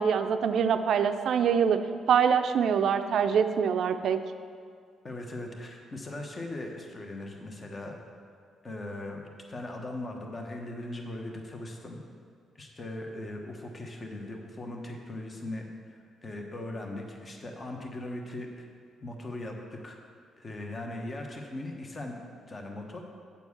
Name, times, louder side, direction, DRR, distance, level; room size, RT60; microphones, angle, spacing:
voice 1, 0.0-1.8 2.1-4.2, right 7 dB, 65° right, 9 dB, 0.5 m, -24 dB
voice 2, 5.0-8.0 8.6-12.0 12.6-18.7 19.0-20.0 20.4-22.2 22.5-23.0, left 1 dB, 35° left, 2 dB, 1.2 m, -39 dB
8.3 x 4.5 x 7.2 m, 2.1 s
cardioid pair, 90°, 0 cm